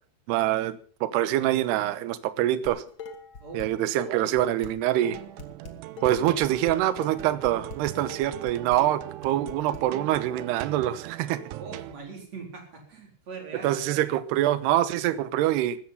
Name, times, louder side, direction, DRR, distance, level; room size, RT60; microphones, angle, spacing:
voice 1, 0.3-2.8 3.5-5.2 6.0-11.4 13.6-15.8, right 13 dB, 70° right, 14 dB, 2.9 m, -25 dB
Dishes pots and pans, 2.6-3.7 4.0-9.8, left 4 dB, 45° left, 1.7 m, -42 dB
sound 1, 5.0-12.0, right 15 dB, 90° right, 3.3 m, -40 dB
voice 2, 11.6-13.8, right 4 dB, 35° right, 3 dB, 5.1 m, -41 dB
16.0 x 14.0 x 5.7 m, 0.42 s
omnidirectional pair, 5.4 m